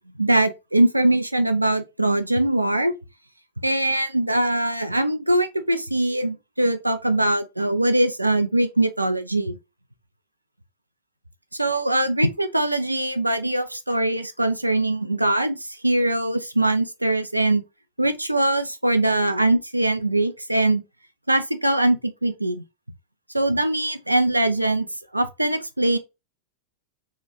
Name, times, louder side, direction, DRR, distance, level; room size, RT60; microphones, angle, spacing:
voice 1, 0.2-2.9 3.6-9.6 11.5-15.6 15.8-17.6 18.0-20.8 21.3-22.6 23.3-24.9 25.1-26.0, right 1 dB, 85° right, 0.4 m, -22 dB
2.8 x 2.3 x 2.4 m
figure-of-eight pair, 90°, 0 cm